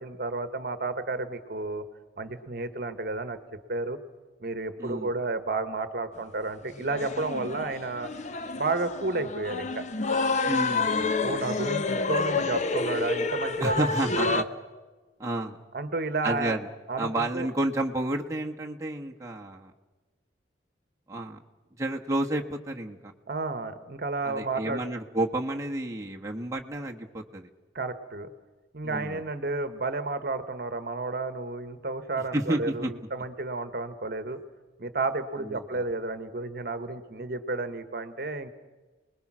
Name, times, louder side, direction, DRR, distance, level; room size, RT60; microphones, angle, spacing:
voice 1, 0.0-1.8 2.2-3.4 3.7-4.0 4.4-8.1 8.6-9.8 11.2-13.9 14.1-14.4 15.7-16.6 16.9-17.5 23.3-24.8 27.7-28.3 28.7-34.4 34.8-38.5, right 3 dB, 55° right, 11 dB, 1.2 m, -31 dB
voice 2, 4.8-5.1 10.5-11.2 13.6-14.4 15.2-15.6 16.2-16.7 17.0-19.7 21.1-21.4 21.8-23.1 24.2-27.5 28.8-29.2 32.3-32.9 35.4-35.6, right 1 dB, 15° right, 0 dB, 1.3 m, -31 dB
sound 1, 6.6-14.4, left 3 dB, 40° left, 0.9 m, -29 dB
29.5 x 20.5 x 6.2 m, 1.3 s
head